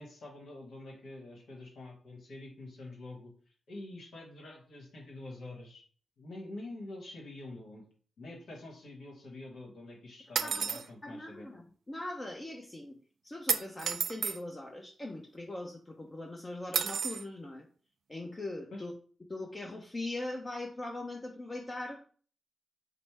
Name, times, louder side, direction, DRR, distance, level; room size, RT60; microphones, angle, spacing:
voice 1, 0.0-3.3 3.7-5.8 6.2-7.8 8.2-11.5 18.7-18.8, left 2 dB, 75° left, -1 dB, 1.3 m, -46 dB
voice 2, 10.4-13.0 13.2-17.7 18.1-18.9 19.3-22.1, left 2 dB, 30° left, 1 dB, 0.8 m, -41 dB
sound 1, 10.4-10.9 13.5-14.4 16.7-17.2, right 7 dB, 75° right, 0.3 m, -31 dB
5.1 x 2.1 x 4.6 m, 0.42 s
supercardioid pair, 45°, 0 cm